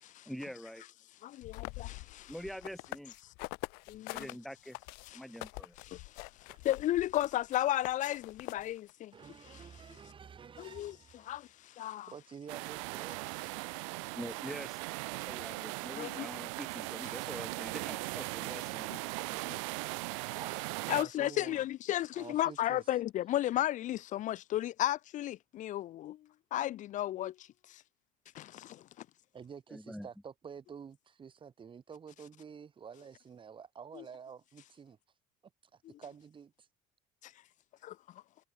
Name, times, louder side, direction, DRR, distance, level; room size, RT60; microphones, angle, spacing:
voice 1, 0.3-0.8 2.3-3.1 4.1-4.8 5.1-5.8 14.2-14.8 15.3-18.9 29.7-30.1, equal, ahead, 2.0 m, -45 dB
voice 2, 1.2-2.3 3.9-4.3 5.1-5.2 5.8-6.2 6.6-9.1 9.5-9.6 10.6-12.1 16.0-16.3 19.5-19.6 20.9-26.2 26.5-27.8 28.3-28.8 34.0-34.1 37.2-37.3 37.8-38.0, left 13 dB, 55° left, 1.1 m, -34 dB
sound 1, 1.4-4.3 4.7-8.9, left 29 dB, 80° left, 2.2 m, -44 dB
voice 3, 9.1-11.4 12.1-13.4 20.4-21.6 22.2-22.8 29.3-35.0 36.0-36.7, right 7 dB, 35° right, 5.6 m, -49 dB
sound 2, 12.5-21.0, right 31 dB, 90° right, 1.9 m, -39 dB
supercardioid pair, 105°, 16 cm